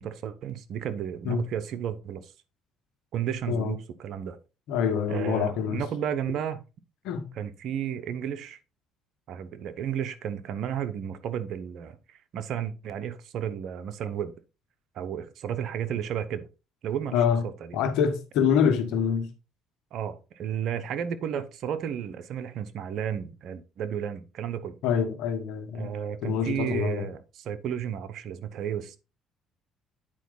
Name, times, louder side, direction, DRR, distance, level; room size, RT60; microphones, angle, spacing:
voice 1, 0.0-2.3 3.1-4.4 5.1-6.6 7.4-8.6 9.3-14.3 14.9-16.5 16.8-17.8 19.9-24.8 25.7-29.0, right 9 dB, 65° right, 1.0 m, -33 dB
voice 2, 4.7-5.8 7.0-7.3 17.1-17.4 17.7-19.3 24.8-25.9 26.2-27.1, left 7 dB, 75° left, 1.4 m, -25 dB
9.1 x 4.7 x 4.0 m
supercardioid pair, 80°, 0 cm